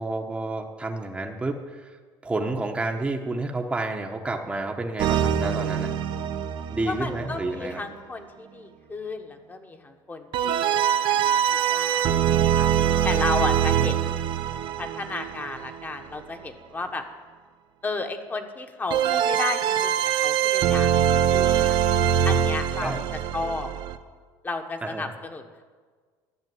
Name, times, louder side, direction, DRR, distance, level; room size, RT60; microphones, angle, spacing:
voice 1, 0.0-2.0 2.2-5.9 6.7-7.8 13.7-13.9 22.8-23.0 24.8-25.1, right 2 dB, 10° right, 2 dB, 1.0 m, -30 dB
sound 1, 5.0-7.7 10.3-16.0 18.9-24.0, right 9 dB, 55° right, 0.7 m, -23 dB
voice 2, 6.9-12.7 13.0-14.2 14.8-17.0 17.8-20.9 21.3-21.8 22.2-23.7 24.4-25.6, left 3 dB, 20° left, 6 dB, 1.2 m, -33 dB
12.5 x 6.6 x 9.4 m, 1.5 s
cardioid pair, 120°, 9 cm